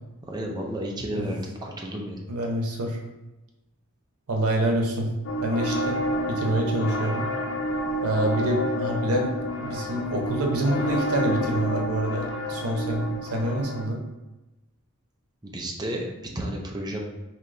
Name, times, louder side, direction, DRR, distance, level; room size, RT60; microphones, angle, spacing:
voice 1, 0.3-2.2 15.4-16.1 16.3-17.0, right 1 dB, 20° right, 0 dB, 0.6 m, -32 dB
voice 2, 2.3-3.0 4.3-5.1 5.4-7.3 8.0-9.3 9.6-14.0, right 1 dB, 85° right, 2 dB, 0.8 m, -26 dB
sound 1, 5.2-13.9, equal, 60° left, 0.5 m, -29 dB
4.0 x 2.9 x 3.2 m, 1.0 s
head